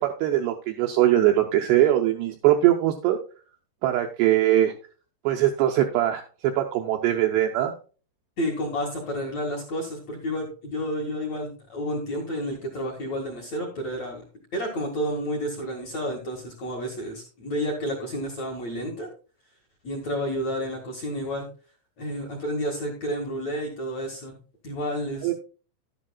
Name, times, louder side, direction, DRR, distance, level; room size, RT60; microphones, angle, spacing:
voice 1, 0.0-3.2 3.8-4.7 5.2-7.7 25.2-25.3, right 12 dB, 80° right, 3 dB, 2.4 m, -21 dB
voice 2, 8.4-14.2 14.5-19.1 19.8-21.5 22.0-24.4 24.6-25.3, equal, 55° left, -1 dB, 2.0 m, -30 dB
11.5 x 11.0 x 2.3 m, 0.37 s
omnidirectional pair, 5.5 m